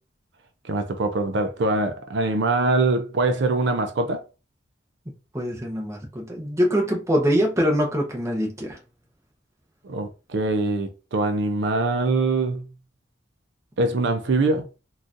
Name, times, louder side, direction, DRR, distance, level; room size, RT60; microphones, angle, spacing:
voice 1, 0.6-4.2 9.8-12.7 13.8-14.7, right 2 dB, 70° right, 0.5 m, -23 dB
voice 2, 5.1-8.8, equal, 15° right, 0.7 m, -24 dB
3.8 x 2.3 x 2.5 m
head